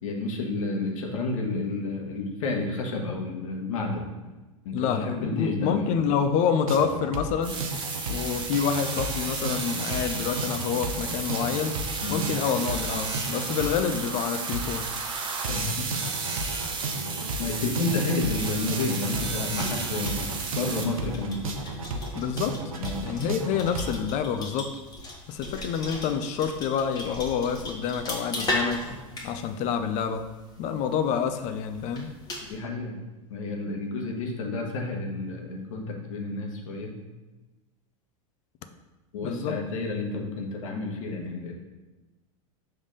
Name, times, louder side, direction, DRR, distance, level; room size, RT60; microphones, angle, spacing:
voice 1, 0.0-4.2 4.6-6.0 12.0-12.3 15.5-16.1 17.1-21.4 22.8-23.1 32.5-33.0 33.3-37.0 39.1-41.5, left 3 dB, 70° left, 2 dB, 1.3 m, -30 dB
voice 2, 4.7-7.6 8.1-11.8 12.1-14.9 22.1-22.6 23.0-24.7 25.3-28.8 29.2-30.3 30.6-32.1 39.2-39.6, left 7 dB, 45° left, 9 dB, 0.6 m, -27 dB
sound 1, 6.7-24.0, right 2 dB, 85° right, 0.7 m, -34 dB
sound 2, 7.4-20.8, right 4 dB, 25° right, 1.0 m, -33 dB
sound 3, 19.6-32.6, left 1 dB, 25° left, 1.4 m, -38 dB
5.4 x 3.4 x 5.5 m, 1.1 s
hypercardioid pair, 105°, 17 cm